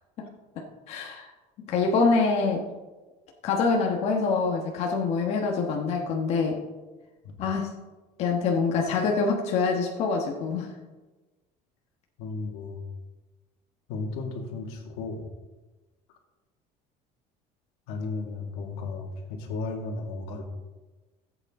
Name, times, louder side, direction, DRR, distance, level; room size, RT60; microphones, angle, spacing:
voice 1, 0.6-1.3 1.7-2.6 3.4-6.6 7.4-7.7 8.2-10.7, left 4 dB, 45° left, 0 dB, 1.3 m, -25 dB
voice 2, 12.2-12.8 13.9-15.3 17.9-20.4, left 3 dB, 80° left, 2 dB, 2.0 m, -34 dB
14.5 x 8.2 x 3.7 m, 1.2 s
cardioid pair, 175°, 16 cm